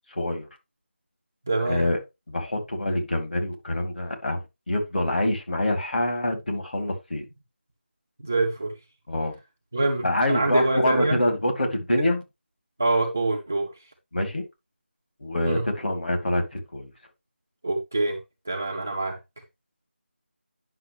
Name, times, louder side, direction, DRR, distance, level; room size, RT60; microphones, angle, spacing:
voice 1, 0.1-0.5 1.7-2.0 2.3-7.2 9.1-9.3 10.0-12.2 14.1-14.4 15.2-16.9, left 1 dB, 50° left, 2.6 m, -26 dB
voice 2, 1.5-1.8 8.2-8.7 9.7-11.2 12.8-13.7 15.4-15.6 17.6-18.2 18.5-19.2, right 2 dB, 10° right, 0.3 m, -25 dB
9.6 x 6.1 x 3.1 m
figure-of-eight pair, 180°, 7 cm